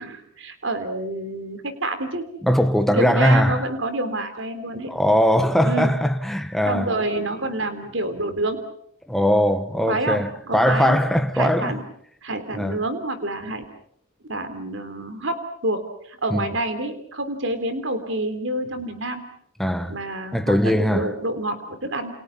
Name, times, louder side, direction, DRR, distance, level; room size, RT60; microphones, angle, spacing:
voice 1, 0.0-2.3 2.9-4.9 5.6-5.9 6.7-8.6 9.9-11.0 11.3-11.8 12.2-13.6 14.2-19.3 19.9-22.1, right 2 dB, 60° right, 3.4 m, -28 dB
voice 2, 2.4-3.7 4.9-6.9 9.1-11.7 12.5-12.8 16.3-16.5 19.6-19.9 20.3-21.1, equal, ahead, 1.3 m, -20 dB
29.5 x 29.0 x 5.8 m
head